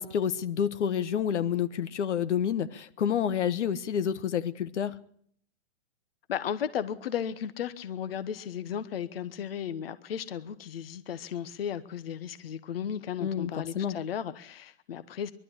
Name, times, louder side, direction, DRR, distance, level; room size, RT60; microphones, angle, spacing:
voice 1, 0.0-5.0 13.2-14.0, left 8 dB, 85° left, 1.3 m, -29 dB
voice 2, 6.3-15.3, left 8 dB, 55° left, 1.1 m, -35 dB
23.0 x 12.0 x 10.0 m
hypercardioid pair, 180°, 34 cm